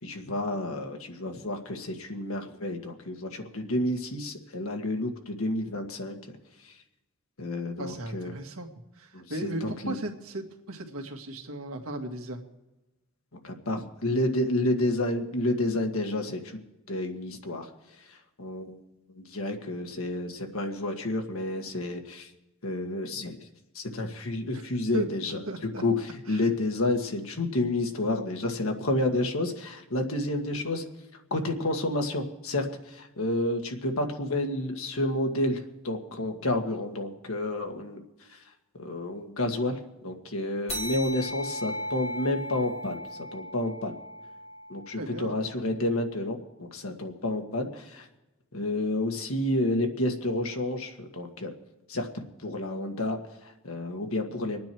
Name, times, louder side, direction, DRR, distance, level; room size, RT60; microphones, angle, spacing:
voice 1, 0.0-6.2 6.6-6.7 7.4-8.3 9.1-10.0 13.4-16.6 16.9-17.7 18.1-18.8 19.1-22.3 22.6-23.5 23.7-25.4 25.8-30.8 31.3-38.0 38.3-38.4 38.8-43.0 43.3-43.9 44.7-48.1 48.5-51.5 51.9-52.1 52.4-54.6, left 1 dB, 80° left, 4 dB, 1.7 m, -30 dB
voice 2, 7.8-8.7 8.9-12.5 24.5-24.6 24.9-25.8 26.3-26.4 45.0-45.4, right 1 dB, 80° right, 4 dB, 1.7 m, -37 dB
sound 1, 40.7-45.6, equal, 30° left, 2.4 m, -37 dB
25.5 x 9.4 x 4.5 m, 1.0 s
head